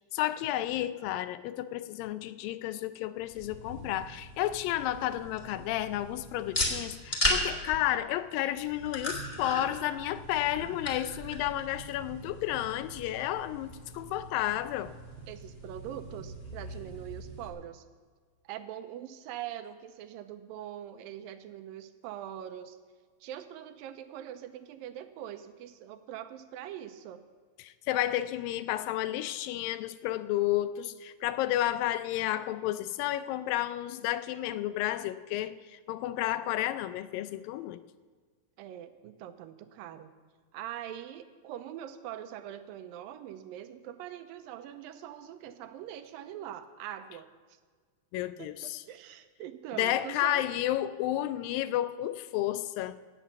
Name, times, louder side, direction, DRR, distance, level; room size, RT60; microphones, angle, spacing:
voice 1, 0.1-14.9 27.6-35.6 35.9-37.8 48.1-48.8 49.8-53.0, left 13 dB, 85° left, 13 dB, 2.3 m, -31 dB
sound 1, 3.2-17.5, left 1 dB, 20° left, 1.4 m, -37 dB
voice 2, 15.3-17.9 18.4-22.8 23.2-27.2 38.6-40.1 40.5-47.3 48.2-50.4, right 11 dB, 85° right, 10 dB, 2.4 m, -43 dB
16.5 x 8.1 x 7.0 m, 1.5 s
omnidirectional pair, 4.1 m